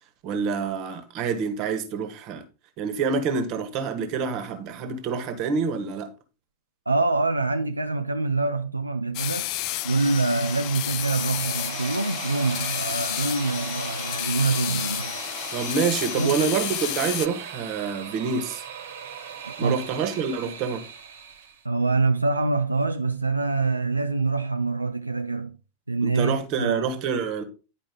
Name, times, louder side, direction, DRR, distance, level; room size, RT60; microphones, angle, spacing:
voice 1, 0.2-2.4 2.8-6.1 15.5-18.6 19.6-20.9 26.0-27.4, right 5 dB, 40° right, 1.4 m, -27 dB
voice 2, 6.9-9.5 9.8-15.2 16.2-16.5 19.5-19.8 21.6-25.6 25.9-26.8, right 3 dB, 85° right, 0.4 m, -25 dB
sound 1, 9.1-17.3, left 16 dB, 45° left, 0.4 m, -31 dB
sound 2, 10.5-21.6, right 7 dB, 65° right, 1.4 m, -38 dB
10.5 x 4.9 x 3.7 m
figure-of-eight pair, 90°, 0 cm